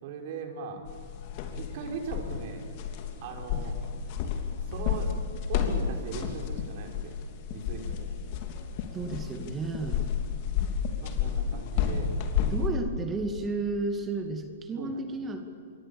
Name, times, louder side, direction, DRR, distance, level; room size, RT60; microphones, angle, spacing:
voice 1, 0.0-0.9 1.5-2.6 3.2-3.8 4.7-5.1 5.5-7.2 7.5-8.2 9.8-9.9 11.0-12.1 14.8-15.0, right 5 dB, 50° right, 2 dB, 4.7 m, -39 dB
sound 1, 0.9-12.7, left 7 dB, 45° left, 3.1 m, -31 dB
voice 2, 8.9-10.0 12.5-15.4, right 3 dB, 20° right, 5 dB, 2.3 m, -32 dB
26.5 x 22.5 x 7.1 m, 2.5 s
hypercardioid pair, 115°, 0 cm